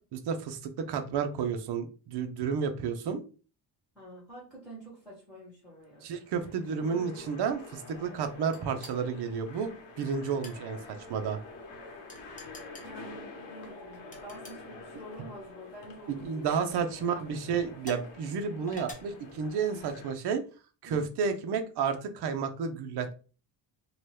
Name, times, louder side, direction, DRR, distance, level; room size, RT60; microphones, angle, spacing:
voice 1, 0.1-3.2 6.0-11.4 16.1-20.4 20.8-23.1, right 6 dB, 60° right, 6 dB, 0.6 m, -31 dB
voice 2, 3.9-6.1 8.7-8.8 12.8-16.8 20.9-21.1, right 1 dB, ahead, -7 dB, 1.3 m, -48 dB
sound 1, 5.8-20.2, left 3 dB, 90° left, 1.0 m, -48 dB
sound 2, 8.5-9.0 10.2-10.6 12.1-12.9 14.1-14.6 15.6-15.9 16.6-16.7 17.8-18.1 18.7-18.9, left 2 dB, 15° left, 0.7 m, -46 dB
2.8 x 2.2 x 3.2 m, 0.36 s
cardioid pair, 140°, 46 cm